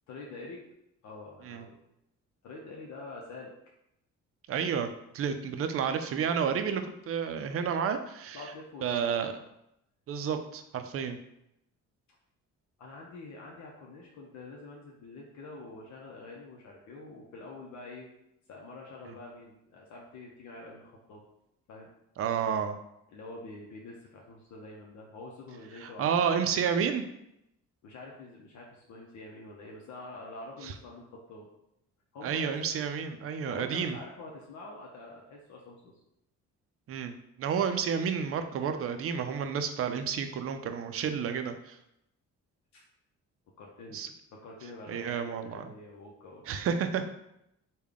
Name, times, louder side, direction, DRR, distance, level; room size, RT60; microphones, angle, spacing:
voice 1, 0.1-0.6 1.0-1.8 2.4-3.5 8.3-9.3 12.8-18.1 18.5-21.2 21.7-21.9 23.1-26.2 27.8-31.5 32.1-32.7 33.4-36.0 42.7-42.8 43.6-44.0 44.3-46.8, left 2 dB, 70° left, -2 dB, 0.7 m, -46 dB
voice 2, 4.5-4.9 5.1-8.4 8.8-9.3 10.1-11.2 22.2-22.8 25.8-27.0 30.6-30.7 32.2-34.0 36.9-41.8 43.9-44.1 44.9-45.6 46.5-47.1, right 7 dB, 50° right, 8 dB, 0.4 m, -30 dB
3.5 x 2.2 x 3.5 m, 0.82 s
cardioid pair, 90°, 30 cm